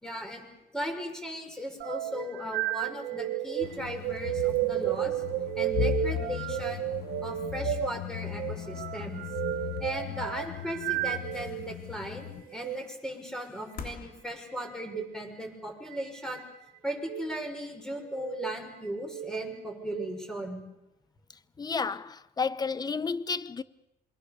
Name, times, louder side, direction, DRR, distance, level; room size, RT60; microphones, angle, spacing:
voice 1, 0.0-0.5 0.7-5.2 5.6-6.9 7.2-9.2 9.5-16.4 16.8-20.6, equal, 5° left, 6.2 m, -37 dB
sound 1, 1.8-11.7 12.5-12.8 14.8-15.1 15.9-16.4 17.0-17.3 18.0-18.5 19.0-20.1, right 13 dB, 75° right, 1.4 m, -33 dB
sound 2, 3.6-12.4, left 11 dB, 75° left, 0.9 m, -37 dB
sound 3, 11.1-15.4 16.3-16.4, left 5 dB, 55° left, 3.4 m, -48 dB
voice 2, 21.6-23.6, left 5 dB, 25° left, 0.9 m, -31 dB
27.5 x 23.0 x 6.9 m
cardioid pair, 110°, 17 cm